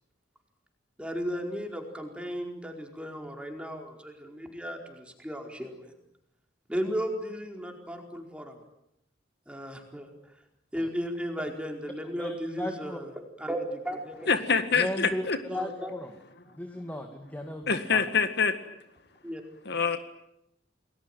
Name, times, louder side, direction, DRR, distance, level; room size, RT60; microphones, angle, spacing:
voice 1, 1.0-5.9 6.7-8.6 9.5-10.1 10.7-13.1 13.4-14.3 15.5-15.9 19.2-19.4, equal, 5° right, 3 dB, 4.7 m, -35 dB
voice 2, 12.2-13.0 14.7-16.1 16.5-18.1, left 1 dB, 10° left, 4 dB, 2.3 m, -36 dB
voice 3, 14.3-15.4 17.7-18.5 19.7-20.0, left 5 dB, 60° left, 10 dB, 1.9 m, -25 dB
29.0 x 20.5 x 9.3 m, 0.81 s
head